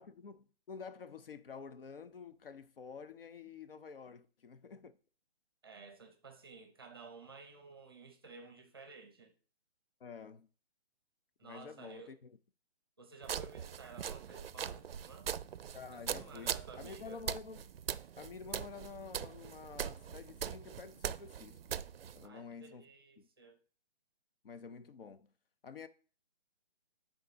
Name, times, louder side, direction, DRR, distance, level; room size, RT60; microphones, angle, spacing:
voice 1, 0.0-5.0 10.0-10.5 11.4-12.3 15.7-17.6 18.2-21.8 22.1-22.9 23.2-23.3 24.4-25.3 25.6-25.9, left 5 dB, 60° left, 0.8 m, -49 dB
voice 2, 5.6-9.3 11.4-12.1 13.0-15.3 15.9-17.2 22.2-23.6, right 4 dB, 25° right, 0.7 m, -54 dB
sound 1, 13.2-22.3, right 8 dB, 65° right, 0.5 m, -41 dB
9.5 x 3.9 x 4.0 m
hypercardioid pair, 175°, 32 cm